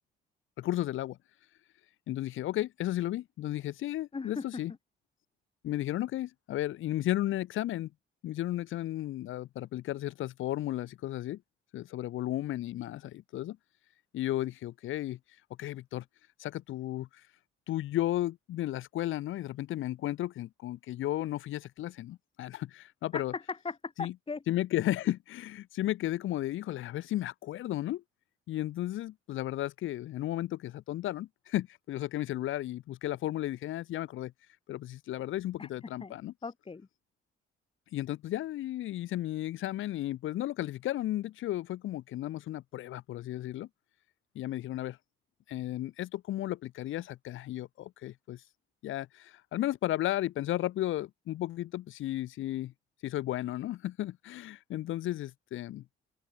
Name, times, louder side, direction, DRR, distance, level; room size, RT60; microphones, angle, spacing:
voice 1, 0.6-1.2 2.1-4.7 5.6-7.9 8.2-11.4 11.7-13.6 14.1-15.2 15.6-16.0 16.4-17.2 17.7-23.3 24.0-24.1 24.5-28.0 28.5-34.3 34.7-36.3 37.9-43.7 44.4-45.0 45.5-48.4 48.8-52.7 53.0-55.8, left 14 dB, 80° left, 2.3 m, -34 dB
voice 2, 4.1-4.6 23.1-24.4 35.6-35.7 36.0-36.2 36.4-36.9, left 4 dB, 25° left, 2.3 m, -38 dB
open air
cardioid pair, 90°, 20 cm